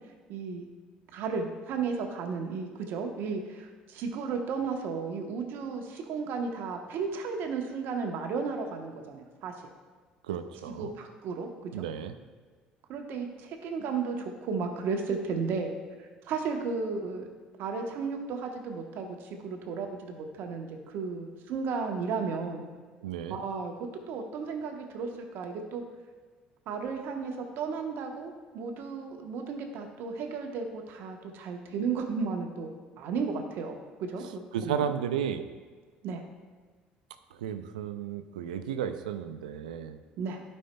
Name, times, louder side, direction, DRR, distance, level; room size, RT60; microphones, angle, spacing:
voice 1, 0.3-0.7 1.1-9.5 10.7-11.9 12.9-17.3 17.6-22.6 23.3-25.8 26.7-34.9 36.0-36.2 40.2-40.4, right 5 dB, 65° right, 4 dB, 1.0 m, -34 dB
voice 2, 10.3-10.9 11.7-12.1 23.0-23.4 34.5-35.4 37.4-40.0, right 8 dB, 90° right, 10 dB, 0.4 m, -33 dB
11.5 x 5.5 x 2.2 m, 1.5 s
hypercardioid pair, 65°, 4 cm